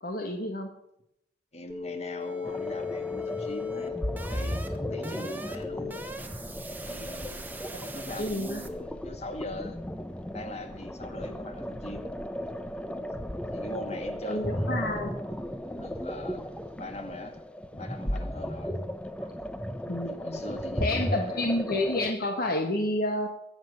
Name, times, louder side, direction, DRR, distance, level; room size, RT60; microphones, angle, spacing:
voice 1, 0.0-0.7 7.7-7.8 8.2-8.6 14.2-15.1 19.9-20.4 20.8-23.3, left 1 dB, 60° left, 4 dB, 1.6 m, -29 dB
voice 2, 1.5-4.0 4.3-6.0 6.8-7.5 7.8-9.8 10.3-12.6 13.0-13.1 13.5-15.0 15.6-16.4 16.8-17.4 17.7-18.8 19.2-19.3 20.1-21.5, left 1 dB, 40° left, 6 dB, 2.1 m, -41 dB
sound 1, 1.7-8.8, left 4 dB, 10° right, 1.3 m, -38 dB
sound 2, 2.4-22.1, equal, 5° left, 0.8 m, -35 dB
21.5 x 7.6 x 6.8 m, 0.80 s
head